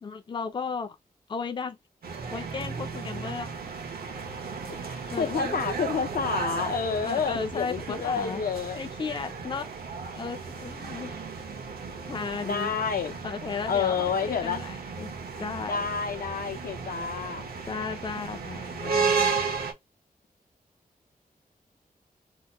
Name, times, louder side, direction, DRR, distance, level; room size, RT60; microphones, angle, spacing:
voice 1, 0.0-1.0 1.3-1.8 2.3-3.5 5.1-5.6 7.0-8.4 8.8-9.7 10.1-11.1 12.1-12.7 13.2-15.1 15.4-15.8 17.7-19.3, left 5 dB, 30° left, 0.4 m, -35 dB
sound 1, 2.0-19.7, right 5 dB, 85° right, 0.9 m, -34 dB
voice 2, 4.7-8.8 12.4-13.1 13.7-14.6 15.7-17.5, left 6 dB, 75° left, 0.6 m, -29 dB
2.9 x 2.1 x 4.1 m
wide cardioid pair, 135°, 15 cm